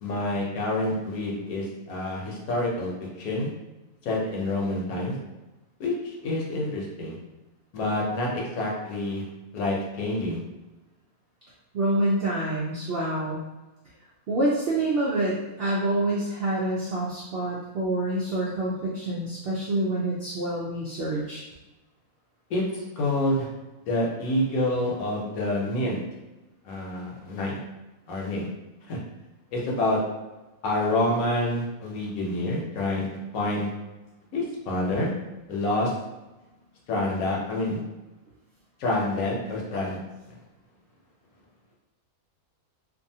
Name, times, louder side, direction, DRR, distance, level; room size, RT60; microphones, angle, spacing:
voice 1, 0.0-2.9 3.2-3.5 4.0-5.2 5.8-7.2 7.7-9.3 9.5-10.4 22.5-23.5 23.9-26.0 26.6-27.6 28.1-28.5 28.9-29.0 29.5-30.0 30.6-33.1 33.3-33.7 34.3-35.1 35.5-35.9 36.9-37.8 38.8-40.0 40.3-40.4, left 1 dB, 75° left, -3 dB, 1.1 m, -27 dB
voice 2, 11.7-13.4 14.3-21.4, right 1 dB, 75° right, -5 dB, 0.5 m, -27 dB
2.6 x 2.5 x 2.7 m, 1.1 s
omnidirectional pair, 1.6 m